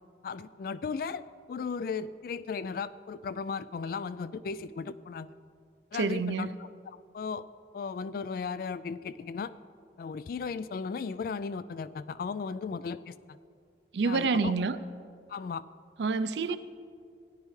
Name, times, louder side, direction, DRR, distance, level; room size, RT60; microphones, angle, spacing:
voice 1, 0.2-1.2 1.5-5.3 5.9-6.5 7.1-7.4 7.7-9.5 10.0-13.4 14.0-14.5 15.3-15.6 16.5-16.6, left 5 dB, 55° left, 16 dB, 0.3 m, -36 dB
voice 2, 5.9-6.5 13.9-14.8 16.0-16.6, right 4 dB, 75° right, 12 dB, 0.5 m, -28 dB
17.0 x 11.0 x 3.2 m, 2.3 s
head